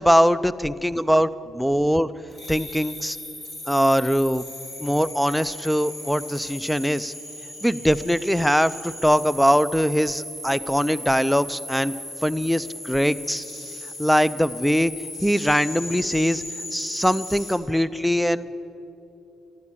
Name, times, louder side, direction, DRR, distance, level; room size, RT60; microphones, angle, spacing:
voice 1, 0.0-2.1 2.5-3.2 3.7-4.4 4.8-7.1 7.6-11.9 12.2-13.5 14.0-14.9 15.2-16.4 16.7-18.5, equal, ahead, 17 dB, 0.4 m, -22 dB
sound 1, 2.3-17.5, left 1 dB, 40° left, 3.9 m, -37 dB
13.5 x 12.0 x 7.4 m, 2.9 s
cardioid pair, 90°, 0 cm